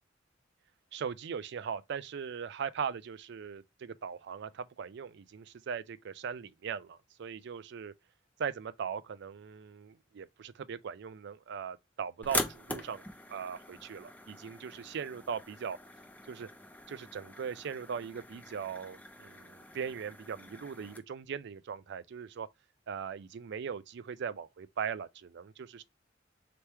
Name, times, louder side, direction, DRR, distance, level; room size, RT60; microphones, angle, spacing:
voice 1, 0.9-7.9 8.4-15.8 16.3-16.5 16.9-22.5 22.9-25.8, right 7 dB, 65° right, 0.4 m, -39 dB
sound 1, 12.2-21.0, left 2 dB, 10° left, 0.6 m, -42 dB
3.3 x 3.0 x 4.4 m
head